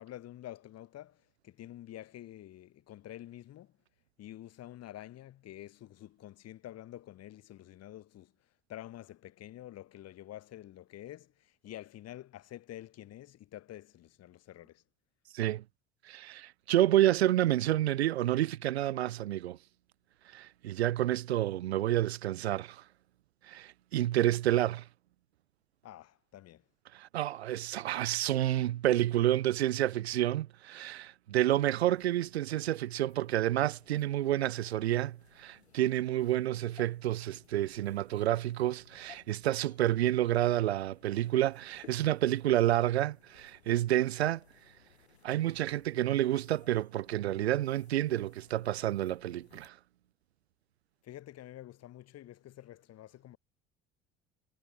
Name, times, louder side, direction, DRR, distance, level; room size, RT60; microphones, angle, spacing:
voice 1, 0.0-3.7 4.2-8.3 8.7-14.8 25.8-26.6 51.0-53.4, left 13 dB, 50° left, 6.0 m, -48 dB
voice 2, 15.3-15.6 16.0-19.6 20.3-22.8 23.4-24.9 26.9-44.4 45.2-49.8, right 13 dB, 80° right, 0.6 m, -29 dB
sound 1, 31.7-49.7, left 9 dB, 80° left, 3.6 m, -62 dB
figure-of-eight pair, 60°, 32 cm